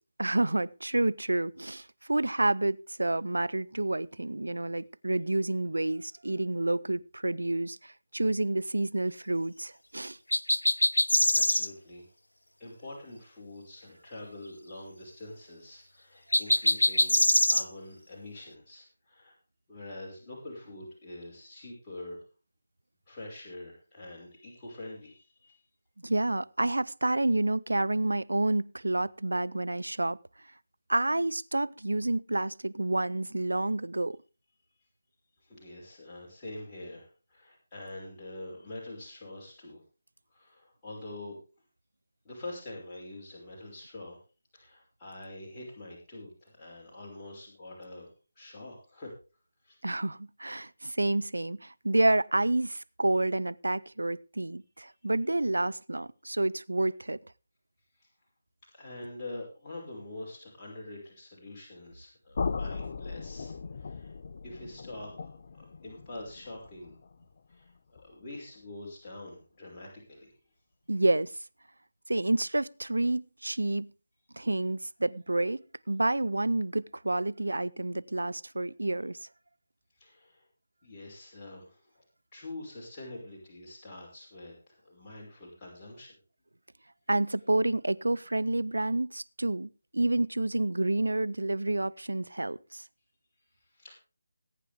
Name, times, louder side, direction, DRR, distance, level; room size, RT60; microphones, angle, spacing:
voice 1, 0.2-10.2 26.0-30.2 30.9-34.2 49.8-57.2 70.9-71.3 72.1-73.9 74.4-79.2 87.1-92.8, right 2 dB, 75° right, 0.7 m, -29 dB
sound 1, 10.3-11.7 16.3-17.6, left 1 dB, 85° left, 0.6 m, -23 dB
voice 2, 11.4-12.1 12.6-17.2 17.5-19.4 19.7-22.2 23.1-25.6 35.4-39.8 40.3-41.4 42.2-44.2 44.5-49.1 49.6-49.8 58.0-58.1 58.7-64.1 64.4-67.0 67.5-70.3 80.0-80.4 80.8-82.1 82.3-86.2 93.5-93.9, left 2 dB, 20° left, 5.4 m, -45 dB
sound 2, 62.3-68.2, left 4 dB, 45° left, 0.7 m, -38 dB
21.0 x 9.4 x 3.5 m
figure-of-eight pair, 155°, 0 cm